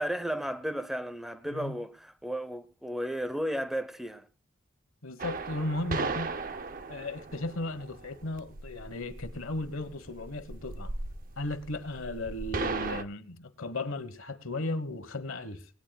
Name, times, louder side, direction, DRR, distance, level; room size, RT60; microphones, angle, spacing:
voice 1, 0.0-4.3, equal, ahead, 0.7 m, -34 dB
voice 2, 1.4-1.8 5.0-6.3 6.9-10.9 11.4-15.6, left 2 dB, 85° left, 1.3 m, -36 dB
sound 1, 5.2-13.0, right 3 dB, 45° right, 0.7 m, -37 dB
18.0 x 18.0 x 2.3 m
head